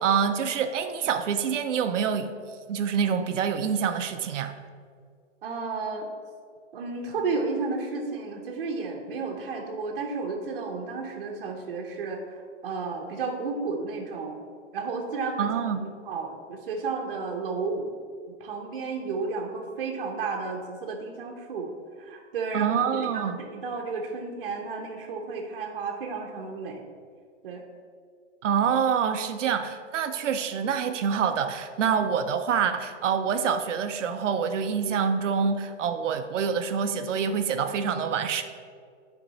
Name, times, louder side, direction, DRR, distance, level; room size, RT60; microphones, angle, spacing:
voice 1, 0.0-2.3 2.7-4.5 15.4-15.8 22.5-23.4 28.4-38.4, right 7 dB, 80° right, 8 dB, 0.8 m, -26 dB
voice 2, 5.4-6.1 6.7-14.4 14.7-15.5 15.8-17.9 18.4-21.7 22.0-26.8 27.4-27.6, right 4 dB, 45° right, 0 dB, 1.0 m, -32 dB
11.0 x 4.5 x 4.1 m, 2.1 s
hypercardioid pair, 175°, 36 cm